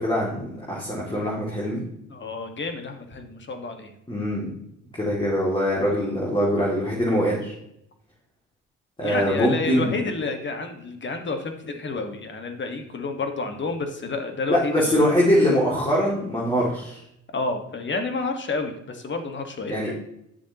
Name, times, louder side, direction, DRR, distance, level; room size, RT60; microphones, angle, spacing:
voice 1, 0.0-1.8 4.1-4.5 5.0-7.5 9.0-10.0 14.5-17.0 19.7-19.9, equal, 15° left, -4 dB, 2.3 m, -23 dB
voice 2, 2.1-3.9 9.0-15.1 17.3-19.9, left 3 dB, 40° left, 6 dB, 1.5 m, -30 dB
9.5 x 7.2 x 2.9 m, 0.79 s
cardioid pair, 90°, 30 cm